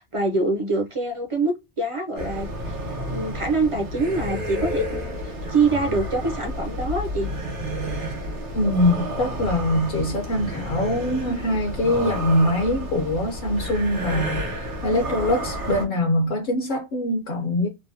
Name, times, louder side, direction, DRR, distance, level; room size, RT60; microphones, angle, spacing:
voice 1, 0.0-2.8 3.1-7.3, right 3 dB, 40° right, 0.4 m, -25 dB
sound 1, 2.2-15.9, equal, 80° right, 1.4 m, -31 dB
voice 2, 8.5-14.6 14.8-17.7, left 1 dB, 55° left, 0.8 m, -23 dB
3.3 x 2.0 x 2.6 m
omnidirectional pair, 1.2 m